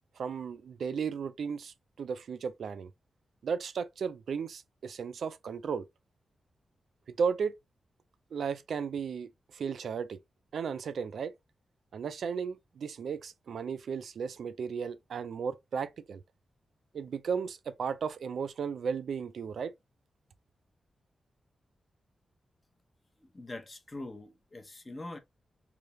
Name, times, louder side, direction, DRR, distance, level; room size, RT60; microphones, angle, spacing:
voice 1, 0.2-2.9 3.4-5.9 7.2-7.5 8.3-10.2 10.5-11.3 11.9-16.2 16.9-19.7, right 6 dB, 70° right, 0.4 m, -35 dB
voice 2, 23.3-25.2, left 2 dB, 20° left, 0.7 m, -43 dB
3.3 x 2.8 x 3.0 m
wide cardioid pair, 165°, 0 cm